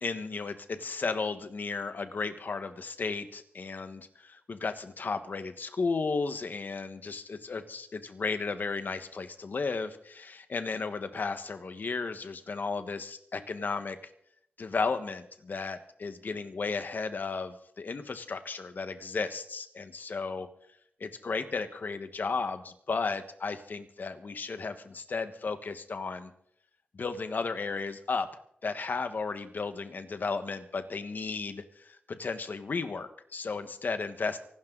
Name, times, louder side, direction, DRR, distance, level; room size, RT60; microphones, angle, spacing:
voice 1, 0.0-14.0 14.6-20.5 21.0-26.3 26.9-28.3 28.6-34.4, left 4 dB, 60° left, 9 dB, 1.5 m, -34 dB
25.0 x 12.0 x 4.0 m, 0.69 s
wide cardioid pair, 105°, 4 cm